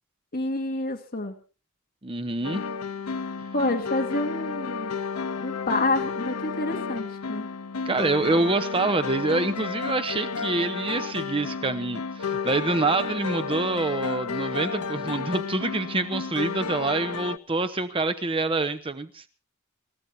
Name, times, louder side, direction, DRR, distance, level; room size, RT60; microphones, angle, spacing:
voice 1, 0.3-1.3 3.5-5.0 5.4-7.5, left 2 dB, 45° left, 2 dB, 2.2 m, -28 dB
voice 2, 2.0-2.6 7.8-19.3, right 3 dB, 25° right, 10 dB, 0.9 m, -26 dB
sound 1, 2.4-17.4, left 5 dB, 80° left, 0.8 m, -32 dB
28.0 x 15.0 x 2.8 m, 0.36 s
head